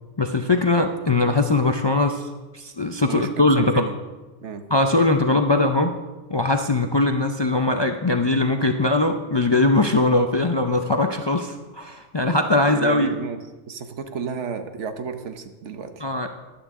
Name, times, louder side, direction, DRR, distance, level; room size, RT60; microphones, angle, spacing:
voice 1, 0.2-2.3 2.5-3.9 4.7-5.9 6.3-13.1 16.0-16.3, left 2 dB, 35° left, 5 dB, 0.4 m, -21 dB
voice 2, 3.5-3.9 4.4-4.6 12.2-12.3 12.7-16.1, right 6 dB, 85° right, 8 dB, 1.2 m, -32 dB
15.0 x 11.5 x 3.7 m, 1.2 s
omnidirectional pair, 1.2 m